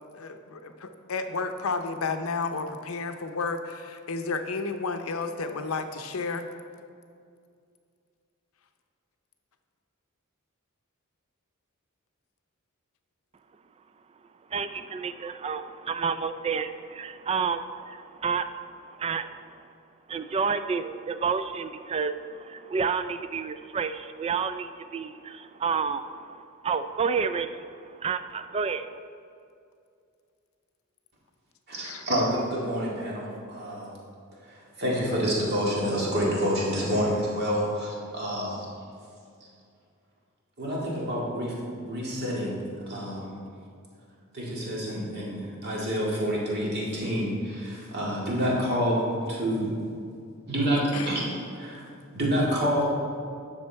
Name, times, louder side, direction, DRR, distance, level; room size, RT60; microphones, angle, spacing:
voice 1, 0.1-6.4 31.8-32.0 50.9-51.2, left 4 dB, 75° left, 8 dB, 0.6 m, -32 dB
voice 2, 14.5-19.6 20.1-29.0, right 5 dB, 30° right, 10 dB, 0.3 m, -30 dB
voice 3, 31.7-34.0 34.8-38.6 40.6-42.5 42.9-43.3 44.3-49.8 50.5-51.3 51.6-51.8 52.1-52.9, equal, 50° right, -5 dB, 2.1 m, -28 dB
9.7 x 6.2 x 4.5 m, 2.3 s
head